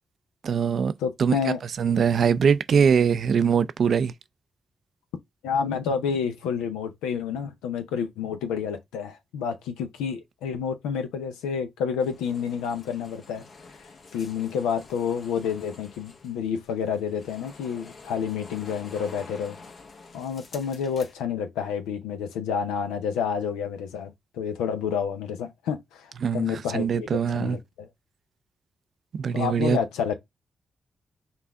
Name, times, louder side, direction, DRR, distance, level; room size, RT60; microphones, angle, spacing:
voice 1, 0.4-0.9 1.2-1.3 1.8-4.1 26.2-27.6 29.1-29.8, right 6 dB, 65° right, 0.4 m, -22 dB
voice 2, 1.0-1.6 5.4-13.4 14.1-19.6 20.1-27.9 29.3-30.1, left 7 dB, 90° left, 0.6 m, -29 dB
sound 1, 12.0-21.2, left 4 dB, 60° left, 1.0 m, -48 dB
5.5 x 2.5 x 3.4 m
supercardioid pair, 45°, 0 cm